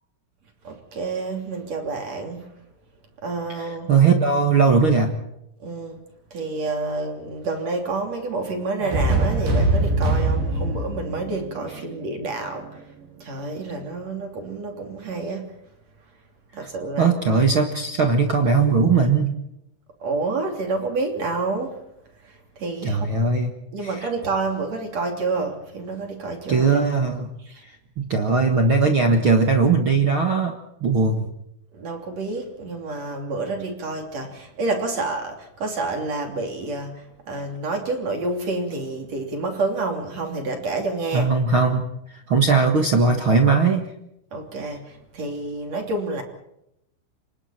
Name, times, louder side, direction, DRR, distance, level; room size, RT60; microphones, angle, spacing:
voice 1, 0.6-2.4 3.2-3.9 5.6-6.0 6.3-12.8 13.2-15.5 16.5-17.1 20.0-21.8 22.2-23.1 23.7-26.7 27.5-27.6 31.7-41.3 44.3-46.2, right 3 dB, 40° right, 3 dB, 3.9 m, -29 dB
voice 2, 3.5-5.2 17.0-19.3 22.8-23.5 23.8-23.9 26.5-27.3 28.0-30.5 30.8-31.2 41.1-41.8 42.3-43.9, right 4 dB, 60° right, 4 dB, 1.3 m, -19 dB
sound 1, 8.8-12.7, right 2 dB, 75° right, 7.0 m, -23 dB
28.5 x 25.0 x 4.4 m, 0.81 s
omnidirectional pair, 5.0 m